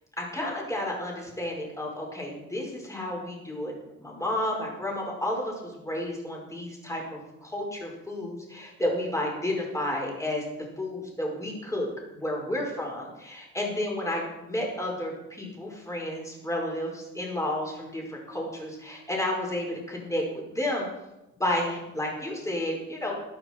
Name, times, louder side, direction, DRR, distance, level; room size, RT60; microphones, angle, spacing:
voice 1, 0.2-10.4 10.8-11.9 12.1-20.9 21.4-23.1, left 1 dB, 10° left, -2 dB, 5.1 m, -31 dB
14.5 x 11.5 x 4.6 m, 0.95 s
cardioid pair, 90°, 30 cm